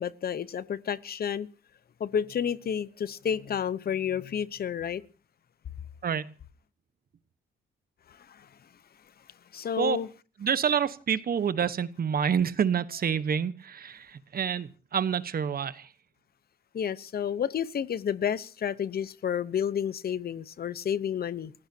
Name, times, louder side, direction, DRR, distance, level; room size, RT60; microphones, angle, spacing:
voice 1, 0.0-1.5 2.0-5.0 8.1-8.5 9.5-10.1 16.7-21.5, left 8 dB, 50° left, 1.0 m, -30 dB
voice 2, 6.0-6.3 9.8-10.0 10.4-15.9, right 7 dB, 50° right, 1.2 m, -28 dB
29.5 x 16.0 x 2.9 m
cardioid pair, 90°, 20 cm